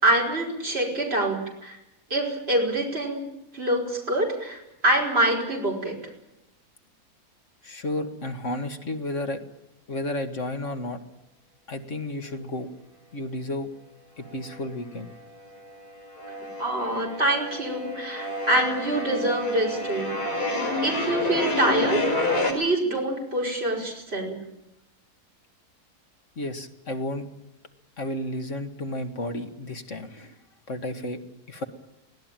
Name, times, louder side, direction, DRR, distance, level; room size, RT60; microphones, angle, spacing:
voice 1, 0.0-1.8 2.1-3.2 3.5-6.0 16.6-20.4 20.8-24.4, right 1 dB, 40° right, -1 dB, 5.4 m, -25 dB
voice 2, 7.6-9.4 9.9-11.0 11.7-12.7 13.1-13.7 14.2-15.1 26.4-27.3 28.0-30.4 30.7-31.2 31.5-31.6, left 1 dB, 50° left, 6 dB, 2.2 m, -32 dB
sound 1, 14.3-15.1 15.4-22.5, left 2 dB, 90° left, 4.8 m, -29 dB
25.0 x 17.0 x 9.1 m, 0.89 s
omnidirectional pair, 1.7 m